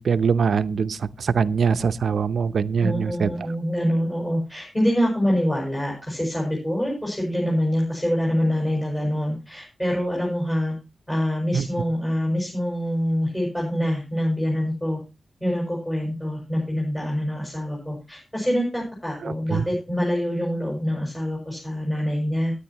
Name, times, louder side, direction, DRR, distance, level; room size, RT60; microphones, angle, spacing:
voice 1, 0.0-3.3 11.5-11.7 19.2-19.6, right 6 dB, 90° right, 13 dB, 0.6 m, -23 dB
voice 2, 2.8-10.7 11.1-15.0 15.4-22.5, equal, 15° left, -3 dB, 6.3 m, -25 dB
18.0 x 10.0 x 3.0 m, 0.27 s
wide cardioid pair, 165°, 0 cm